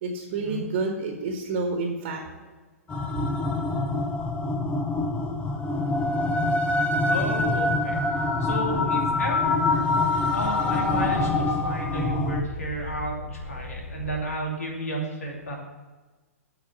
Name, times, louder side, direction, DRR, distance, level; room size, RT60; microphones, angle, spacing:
voice 1, 0.0-2.5, right 3 dB, 45° right, 3 dB, 1.4 m, -29 dB
sound 1, 2.9-12.4, left 2 dB, 15° left, 0.8 m, -25 dB
voice 2, 7.0-9.8 10.3-15.6, right 1 dB, 75° left, 0 dB, 2.7 m, -32 dB
sound 2, 8.1-14.1, left 2 dB, 35° left, 2.2 m, -39 dB
8.6 x 6.1 x 7.6 m, 1.2 s
figure-of-eight pair, 115°, 8 cm